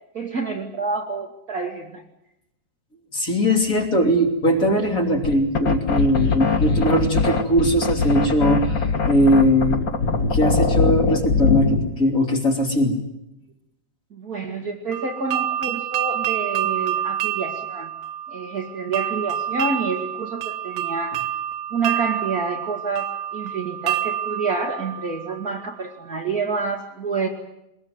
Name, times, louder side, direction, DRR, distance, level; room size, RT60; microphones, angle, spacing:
voice 1, 0.1-2.0 14.1-17.9 18.3-21.2 21.7-27.3, right 4 dB, 35° right, 1 dB, 1.7 m, -28 dB
voice 2, 3.1-9.8 10.3-13.0, equal, 25° left, 2 dB, 2.9 m, -20 dB
sound 1, 5.2-11.9, left 4 dB, 75° left, 0.8 m, -21 dB
sound 2, 14.9-25.7, right 11 dB, 85° right, 3.1 m, -28 dB
21.5 x 21.0 x 9.6 m, 0.89 s
omnidirectional pair, 4.4 m